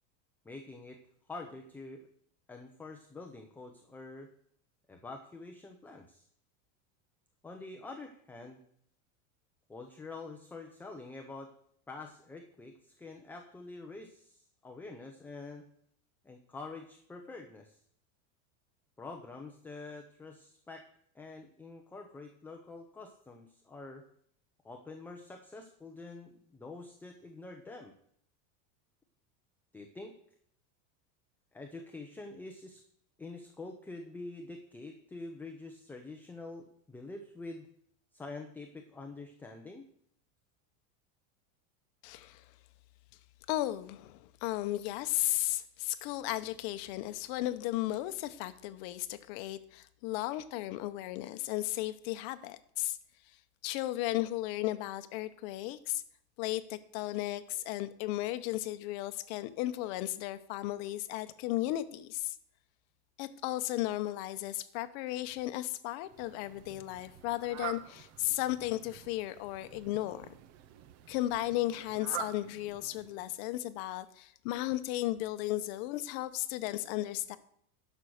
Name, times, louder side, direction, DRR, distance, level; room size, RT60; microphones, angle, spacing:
voice 1, 0.4-1.0 1.3-2.1 2.5-4.3 4.9-6.3 7.4-8.6 9.7-11.5 11.9-15.7 16.2-17.8 19.0-20.9 21.1-24.1 24.6-27.9 29.7-30.1 31.5-32.8 33.2-37.7 38.1-39.9, left 3 dB, 5° left, 3 dB, 0.6 m, -46 dB
voice 2, 42.0-42.4 43.5-53.0 53.6-56.0 56.4-62.3 63.2-70.3 71.1-77.4, left 15 dB, 50° left, 11 dB, 0.9 m, -35 dB
Fowl, 66.0-73.4, right 10 dB, 40° right, 0.7 m, -47 dB
11.0 x 6.3 x 6.5 m, 0.66 s
supercardioid pair, 155°, 40 cm